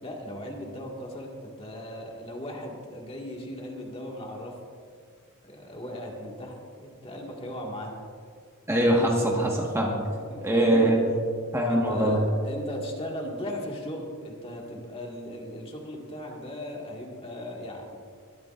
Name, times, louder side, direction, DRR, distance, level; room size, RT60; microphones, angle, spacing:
voice 1, 0.0-4.5 5.4-7.9 10.3-10.9 11.7-18.0, equal, 25° left, -1 dB, 1.9 m, -37 dB
voice 2, 8.7-9.9 10.4-11.0 11.5-12.2, right 1 dB, 10° right, -2 dB, 1.5 m, -22 dB
21.5 x 12.5 x 2.5 m, 2.2 s
head